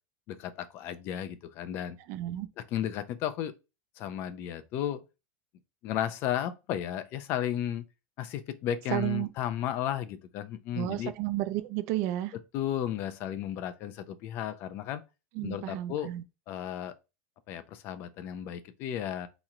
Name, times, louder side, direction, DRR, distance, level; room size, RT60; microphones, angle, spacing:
voice 1, 0.3-2.0 2.7-3.5 4.0-5.0 5.8-7.8 8.2-11.1 12.5-15.0 15.4-16.1 16.5-16.9 17.5-19.3, left 10 dB, 30° left, 0.4 m, -34 dB
voice 2, 2.1-2.5 8.9-9.3 10.7-12.3 15.3-16.2, right 14 dB, 35° right, 0.4 m, -32 dB
4.2 x 3.0 x 3.7 m
supercardioid pair, 180°, 7 cm